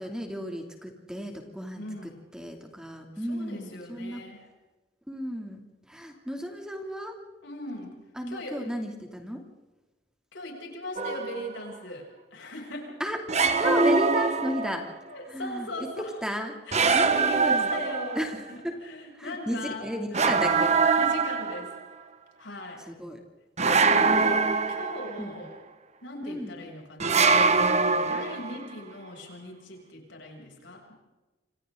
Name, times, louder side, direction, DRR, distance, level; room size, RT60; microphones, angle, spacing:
voice 1, 0.0-1.8 2.3-4.2 5.1-5.6 5.9-7.1 8.2-9.4 13.0-13.2 13.6-14.8 15.3-15.7 16.2-16.6 16.9-17.7 18.1-18.4 18.6-18.7 19.2-20.7 22.9-23.2 25.2-25.4 26.2-26.5, equal, 5° right, 3 dB, 2.7 m, -33 dB
voice 2, 1.8-2.2 3.2-4.5 7.4-8.0 8.3-8.6 10.3-13.0 15.1-16.2 16.7-18.2 18.5-20.3 21.0-21.7 22.4-22.9 23.6-25.6 26.0-27.3 27.7-30.9, left 1 dB, 75° left, 0 dB, 7.4 m, -39 dB
sound 1, 11.0-11.5 13.3-15.0 16.7-18.4 20.1-21.8 23.6-25.3 27.0-28.6, right 4 dB, 35° right, 1.4 m, -23 dB
28.0 x 27.5 x 3.9 m, 1.2 s
head